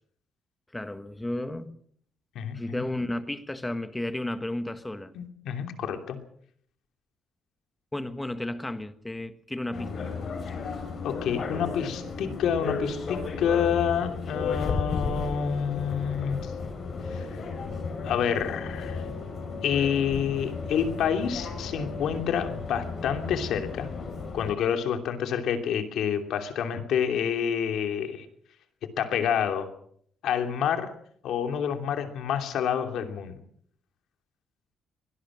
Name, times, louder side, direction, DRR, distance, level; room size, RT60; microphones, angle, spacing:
voice 1, 0.7-1.7 2.5-5.1 7.9-10.1, left 1 dB, 10° left, 1.4 m, -33 dB
voice 2, 5.1-6.2 11.0-16.5 17.1-17.4 18.0-19.0 19.6-23.9 24.3-28.3 29.0-29.7 30.2-30.9 31.2-33.4, left 8 dB, 80° left, 2.9 m, -28 dB
sound 1, 9.7-24.6, left 4 dB, 45° left, 5.7 m, -34 dB
23.5 x 18.5 x 6.4 m
cardioid pair, 145°, 0 cm